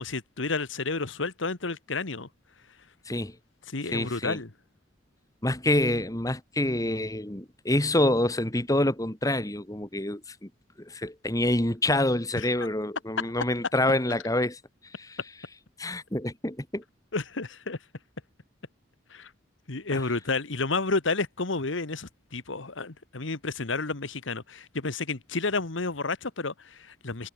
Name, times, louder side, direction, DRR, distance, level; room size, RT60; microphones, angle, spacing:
voice 1, 0.0-2.3 3.7-4.5 12.4-12.7 17.1-17.8 19.1-19.3 19.7-27.3, left 3 dB, 80° left, 1.6 m, -31 dB
voice 2, 3.9-4.4 5.4-10.5 10.8-14.6 15.0-15.2 15.8-16.8 19.9-20.0, left 1 dB, 20° left, 1.9 m, -27 dB
head